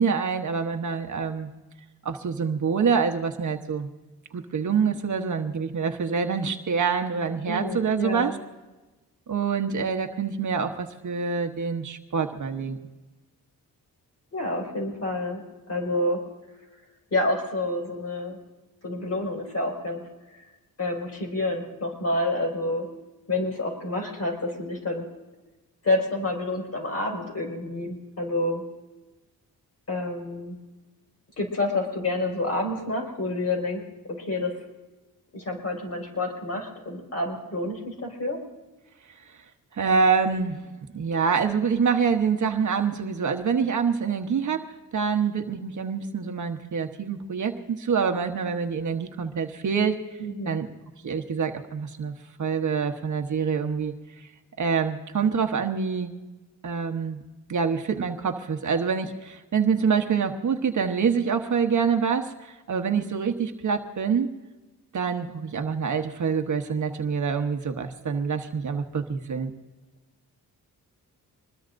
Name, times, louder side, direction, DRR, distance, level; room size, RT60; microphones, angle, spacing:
voice 1, 0.0-1.5 2.0-3.9 4.3-8.4 9.3-12.8 39.7-40.6 40.9-50.0 50.4-50.7 51.0-52.1 52.4-53.9 54.2-54.3 54.6-56.1 56.6-57.2 57.5-64.3 64.9-69.5, right 6 dB, 50° right, 5 dB, 1.1 m, -26 dB
voice 2, 7.5-8.4 14.3-15.4 15.7-16.2 17.1-18.4 18.8-20.5 20.8-22.9 23.3-25.0 25.8-28.6 29.9-30.6 31.4-33.8 34.1-34.5 35.3-38.4 50.2-50.6, left 2 dB, 40° left, 1 dB, 5.3 m, -28 dB
25.5 x 21.0 x 2.6 m, 1.1 s
cardioid pair, 110°, 37 cm